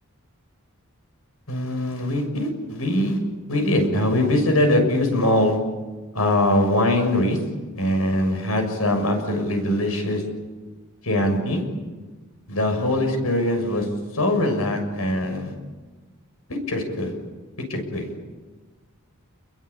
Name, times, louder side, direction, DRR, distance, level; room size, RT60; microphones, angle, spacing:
voice 1, 1.5-3.2 3.5-5.6 6.1-7.4 7.7-10.2 11.0-11.6 12.5-13.9 14.1-15.5 16.7-17.1 17.7-18.1, left 1 dB, 90° left, 5 dB, 6.8 m, -22 dB
29.0 x 22.0 x 8.6 m, 1.3 s
head